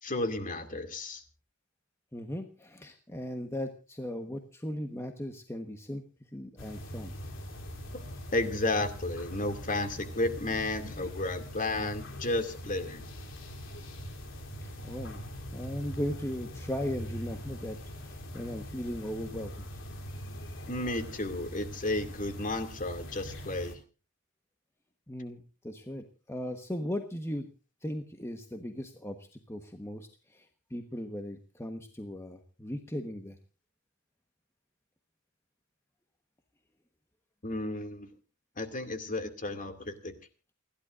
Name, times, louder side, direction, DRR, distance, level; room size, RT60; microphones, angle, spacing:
voice 1, 0.0-1.2 8.3-13.0 20.7-23.8 37.4-38.1 38.6-40.1, left 2 dB, 35° left, 7 dB, 2.4 m, -32 dB
voice 2, 2.1-6.0 6.3-7.1 14.6-15.2 15.5-17.8 18.0-19.5 25.1-27.5 27.8-33.4, left 1 dB, 10° left, 5 dB, 1.2 m, -37 dB
sound 1, 6.6-23.8, equal, 60° left, 3.3 m, -42 dB
29.5 x 11.5 x 2.5 m, 0.34 s
head